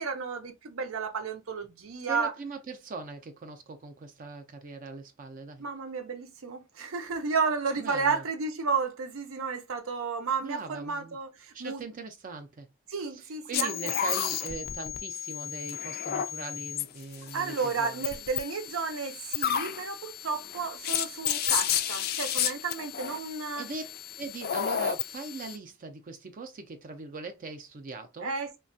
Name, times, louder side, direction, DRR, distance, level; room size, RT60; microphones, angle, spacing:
voice 1, 0.0-2.3 5.6-11.8 12.9-14.0 17.3-23.7 28.2-28.6, right 5 dB, 85° right, 0.6 m, -32 dB
voice 2, 2.1-5.7 7.8-8.2 10.4-11.2 11.5-12.7 13.1-18.0 23.5-23.8 24.2-28.3, right 3 dB, 40° right, 0.4 m, -40 dB
sound 1, 13.5-25.6, left 10 dB, 50° left, 0.3 m, -32 dB
3.2 x 2.2 x 2.5 m
head